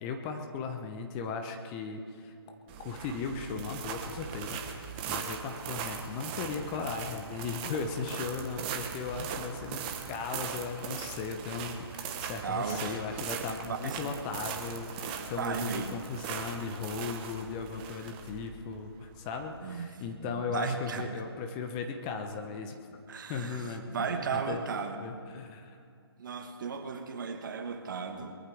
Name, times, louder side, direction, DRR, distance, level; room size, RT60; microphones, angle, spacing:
voice 1, 0.0-2.3 2.8-23.0 23.3-24.6 25.0-25.8, left 5 dB, 20° left, 5 dB, 0.8 m, -37 dB
sound 1, 2.7-19.6, right 7 dB, 20° right, 1.1 m, -40 dB
voice 2, 12.4-13.0 13.6-14.1 15.4-16.0 19.6-21.1 23.1-25.2 26.2-28.4, right 5 dB, 50° right, 6 dB, 1.5 m, -35 dB
22.0 x 14.0 x 3.6 m, 2.4 s
figure-of-eight pair, 145°, 14 cm